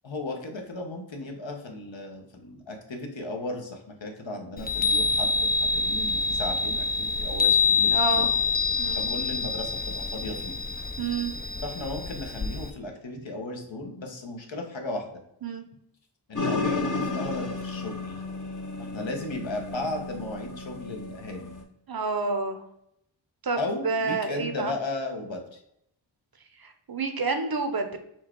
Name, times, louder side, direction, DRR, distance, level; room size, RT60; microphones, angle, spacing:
voice 1, 0.0-8.3 8.9-10.6 11.6-15.1 16.3-18.2 18.8-21.5 23.6-25.6, left 2 dB, 75° left, 3 dB, 0.9 m, -35 dB
Chime, 4.6-12.7, left 4 dB, 25° left, 0.3 m, -26 dB
voice 2, 7.9-8.3 8.8-9.1 11.0-11.3 15.4-15.6 21.9-22.6 23.4-23.6 23.8-24.7 26.6-28.0, right 4 dB, 50° right, 8 dB, 0.6 m, -29 dB
sound 1, 16.3-21.6, left 3 dB, 40° left, 0.8 m, -33 dB
4.5 x 2.3 x 4.3 m, 0.75 s
wide cardioid pair, 45°, 46 cm